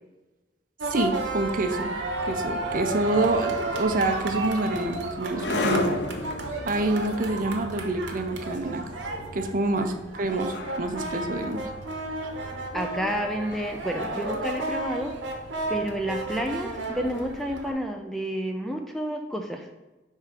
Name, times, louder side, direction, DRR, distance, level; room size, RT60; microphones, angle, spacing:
sound 1, 0.8-17.7, right 2 dB, 75° right, 0.9 m, -33 dB
voice 1, 0.9-1.9 2.3-6.0 6.7-8.8 9.3-11.6, right 2 dB, 45° right, 6 dB, 0.6 m, -27 dB
sound 2, 4.2-15.3, left 2 dB, 65° left, 0.6 m, -36 dB
voice 2, 12.7-15.1 15.7-19.7, equal, ahead, 3 dB, 0.4 m, -30 dB
5.0 x 3.6 x 5.7 m, 1.1 s
head